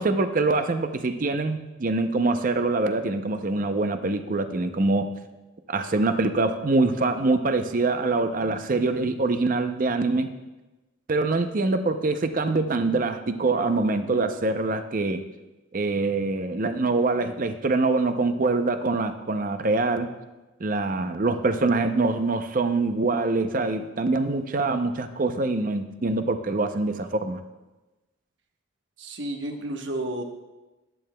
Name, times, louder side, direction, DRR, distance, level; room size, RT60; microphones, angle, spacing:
voice 1, 0.0-5.1 5.7-10.3 11.1-15.2 15.7-20.1 20.6-27.4, right 3 dB, 40° right, 8 dB, 0.5 m, -24 dB
voice 2, 29.0-30.2, right 1 dB, 60° right, 3 dB, 1.1 m, -31 dB
14.0 x 10.5 x 2.2 m, 1.1 s
head